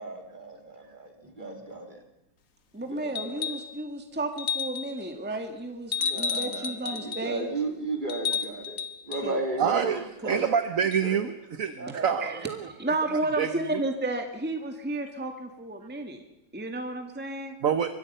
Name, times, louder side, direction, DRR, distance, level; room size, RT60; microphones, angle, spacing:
voice 1, 0.0-2.0 2.9-3.4 6.0-10.4 11.0-11.2 11.8-12.4, right 2 dB, 25° right, 3 dB, 3.4 m, -35 dB
voice 2, 2.7-7.5 9.2-9.9 10.2-10.4 12.2-16.2 16.5-17.6, right 2 dB, 5° right, 5 dB, 1.9 m, -33 dB
sound 1, 3.2-3.7 4.4-5.0 5.9-7.3 8.1-9.3 10.9-11.0, left 7 dB, 50° left, 1.4 m, -31 dB
voice 3, 9.6-12.7 13.4-13.8 17.6-17.9, right 7 dB, 50° right, 10 dB, 1.2 m, -27 dB
25.0 x 22.0 x 5.6 m, 0.89 s
omnidirectional pair, 2.1 m